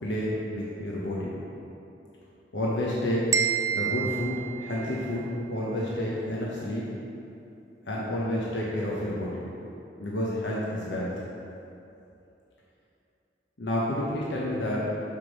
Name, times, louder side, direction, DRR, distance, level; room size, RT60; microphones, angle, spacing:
voice 1, 0.0-1.3 2.5-3.3 3.7-6.9 7.9-9.4 10.0-11.1 13.6-14.8, left 1 dB, 90° left, -5 dB, 1.0 m, -30 dB
sound 1, 3.3-5.3, right 8 dB, 15° right, 0.3 m, -29 dB
5.7 x 5.1 x 6.2 m, 2.8 s
head